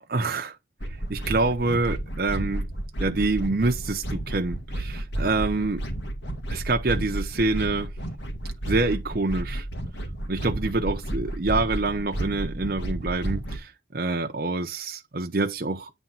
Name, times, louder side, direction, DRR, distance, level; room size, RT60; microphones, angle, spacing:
voice 1, 0.1-0.5 1.1-2.7 3.0-5.8 6.5-7.9 8.7-9.6 10.3-15.9, right 3 dB, 55° right, 0.8 m, -26 dB
sound 1, 0.8-13.6, right 1 dB, 85° left, 2.0 m, -32 dB
9.0 x 3.5 x 5.6 m
head